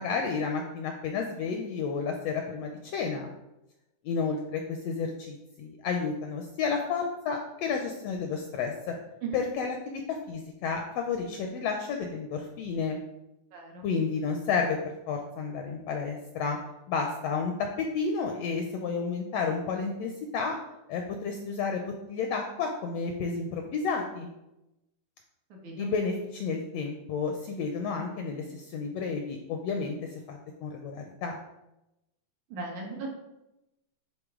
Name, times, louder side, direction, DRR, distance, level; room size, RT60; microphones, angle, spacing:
voice 1, 0.0-3.3 4.0-9.0 9.3-13.0 13.8-16.6 16.9-20.6 20.9-24.3 25.8-29.9 30.3-31.4, left 5 dB, 75° left, 3 dB, 1.5 m, -31 dB
voice 2, 13.5-13.8 25.5-25.9 32.5-33.2, right 4 dB, 70° right, -1 dB, 2.7 m, -37 dB
10.0 x 3.9 x 3.7 m, 0.92 s
omnidirectional pair, 3.5 m